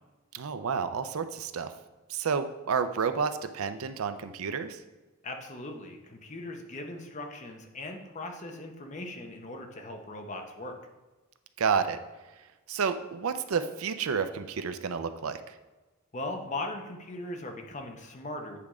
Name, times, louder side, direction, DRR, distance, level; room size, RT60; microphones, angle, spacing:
voice 1, 0.3-1.7 2.1-4.8 11.6-12.0 12.7-15.4, right 6 dB, 80° right, 10 dB, 0.5 m, -30 dB
voice 2, 5.2-10.7 16.1-18.6, left 2 dB, 35° left, 4 dB, 0.8 m, -39 dB
8.6 x 3.5 x 4.9 m, 1.2 s
head